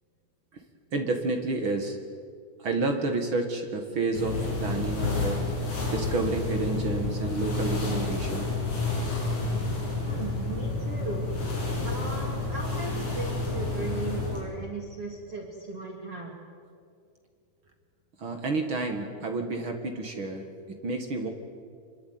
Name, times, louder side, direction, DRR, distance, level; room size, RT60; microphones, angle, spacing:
voice 1, 0.9-2.0 2.6-5.4 5.9-8.5 18.2-21.3, right 3 dB, 70° right, 4 dB, 1.2 m, -30 dB
sound 1, 4.1-14.4, left 3 dB, 40° left, 7.6 m, -30 dB
voice 2, 10.0-11.2 11.8-12.9 13.1-16.3, right 3 dB, 35° right, 0 dB, 3.1 m, -37 dB
26.5 x 23.0 x 9.5 m, 2.2 s
omnidirectional pair, 5.5 m